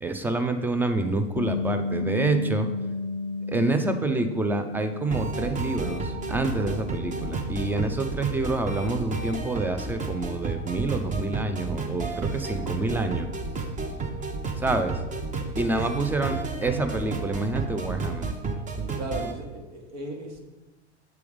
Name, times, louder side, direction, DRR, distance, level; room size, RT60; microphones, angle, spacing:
voice 1, 0.0-2.7 3.5-13.3 14.2-14.3 14.6-14.9 15.6-18.3, right 2 dB, 5° right, 7 dB, 0.3 m, -27 dB
Bass guitar, 1.4-7.6, left 3 dB, 50° left, 0.5 m, -33 dB
sound 1, 5.1-19.3, right 3 dB, 20° right, 0.8 m, -31 dB
voice 2, 19.0-20.4, right 1 dB, 70° right, 1 dB, 1.4 m, -36 dB
7.0 x 3.5 x 4.9 m, 1.1 s
hypercardioid pair, 100°, 34 cm